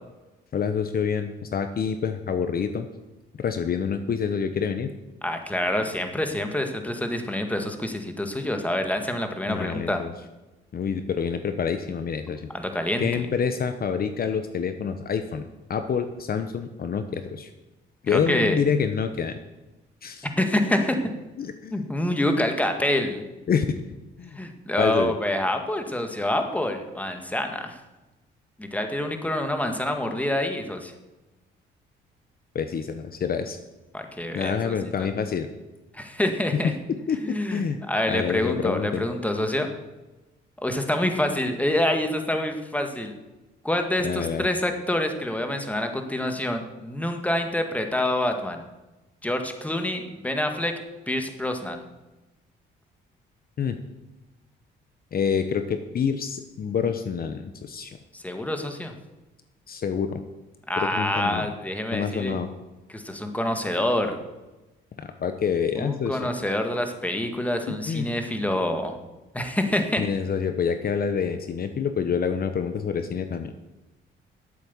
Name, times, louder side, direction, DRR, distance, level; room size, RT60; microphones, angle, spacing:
voice 1, 0.5-2.9 3.4-4.9 9.5-10.1 10.7-12.5 13.0-17.5 18.0-19.4 20.0-20.3 21.4-21.9 23.5-23.7 24.2-24.4 24.8-25.1 32.5-33.6 34.3-35.5 36.5-36.7 37.1-39.1 44.0-44.5 53.6-53.8 55.1-58.0 59.7-60.2 60.8-61.5 61.9-62.5 65.0-66.3 67.7-68.1 70.0-73.5, left 6 dB, 50° left, 9 dB, 1.0 m, -27 dB
voice 2, 5.2-10.0 12.5-13.2 18.1-18.6 20.4-21.0 21.7-23.2 24.3-27.8 28.6-30.9 33.9-35.1 35.9-36.7 37.2-37.6 37.9-39.7 40.6-43.1 43.6-48.6 49.2-50.7 51.1-51.8 58.1-58.9 60.7-62.4 62.9-64.2 65.8-69.0 69.3-70.0, left 1 dB, 5° left, 5 dB, 1.9 m, -26 dB
12.0 x 8.4 x 7.2 m, 1.1 s
cardioid pair, 90°, 20 cm